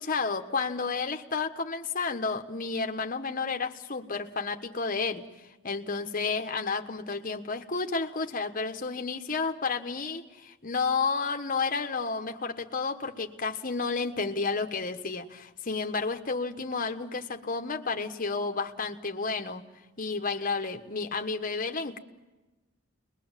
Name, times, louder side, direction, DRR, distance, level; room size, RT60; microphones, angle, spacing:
voice 1, 0.0-5.2 5.6-19.6 20.0-22.0, left 4 dB, 45° left, 5 dB, 1.4 m, -31 dB
30.0 x 21.5 x 7.4 m, 1.1 s
head